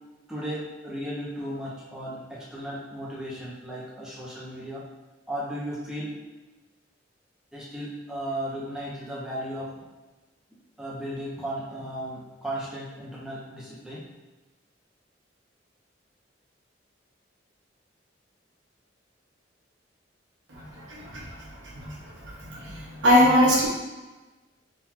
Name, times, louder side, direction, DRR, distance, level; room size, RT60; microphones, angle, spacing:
voice 1, 0.3-4.8 5.3-6.1 7.5-9.7 10.8-14.0, equal, 5° right, -7 dB, 0.9 m, -35 dB
voice 2, 20.9-21.2 22.5-22.6 23.0-23.7, left 1 dB, 70° right, -4 dB, 1.1 m, -19 dB
3.7 x 2.6 x 4.5 m, 1.2 s
head